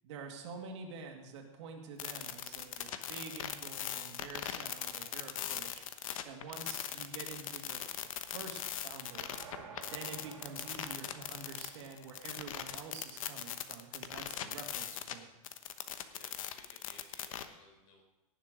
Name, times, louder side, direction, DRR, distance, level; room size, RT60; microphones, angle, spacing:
voice 1, 0.0-7.8 8.3-9.3 9.8-15.3, right 5 dB, 55° right, 3 dB, 2.1 m, -48 dB
sound 1, 2.0-15.2 15.4-17.5, left 10 dB, 65° left, 1.1 m, -40 dB
sound 2, 8.8-12.9, right 6 dB, 85° right, 2.8 m, -54 dB
voice 2, 16.1-18.0, left 3 dB, 45° left, 2 dB, 3.8 m, -59 dB
18.0 x 7.2 x 5.1 m, 1.0 s
supercardioid pair, 170°, 18 cm